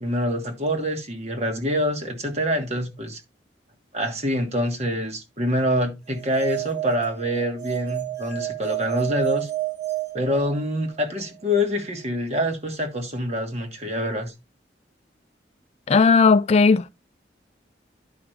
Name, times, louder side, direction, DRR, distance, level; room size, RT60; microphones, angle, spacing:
voice 1, 0.0-3.2 3.9-9.5 10.1-14.3, equal, 35° right, 1.5 m, -26 dB
sound 1, 6.1-11.0, right 17 dB, 75° right, 3.0 m, -30 dB
voice 2, 15.9-16.9, left 4 dB, 35° left, 0.3 m, -16 dB
10.5 x 5.2 x 3.3 m
head